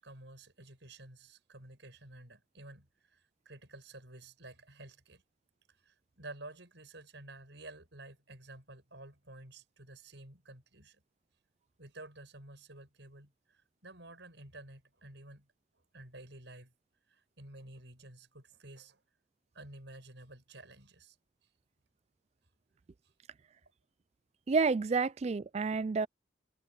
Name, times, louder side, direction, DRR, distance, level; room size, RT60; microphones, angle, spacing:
voice 1, 0.0-5.2 5.7-11.0 11.8-15.5 15.9-16.7 17.1-19.0 19.5-21.2 23.0-23.1, right 2 dB, 65° right, 7.1 m, -52 dB
voice 2, 24.5-26.1, right 4 dB, 35° right, 0.3 m, -29 dB
head